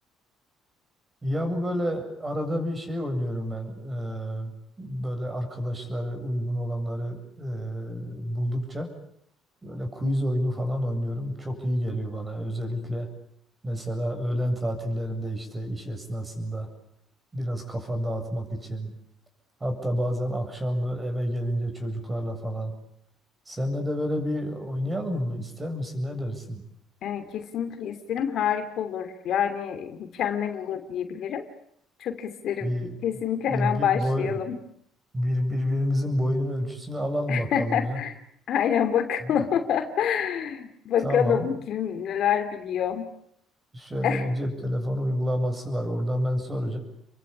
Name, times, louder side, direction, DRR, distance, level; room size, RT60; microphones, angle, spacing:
voice 1, 1.2-8.9 9.6-13.1 13.6-16.7 17.3-18.9 19.6-22.7 23.5-26.6 32.6-33.0 33.5-34.4 35.1-38.0 39.2-39.4 41.0-41.5 43.7-46.8, equal, 15° right, 6 dB, 7.7 m, -29 dB
voice 2, 27.0-31.5 32.0-32.7 33.0-34.6 37.3-38.1 38.5-43.1 44.0-44.3, left 8 dB, 60° left, 8 dB, 2.9 m, -27 dB
29.5 x 23.0 x 8.7 m, 0.71 s
cardioid pair, 125°, 0 cm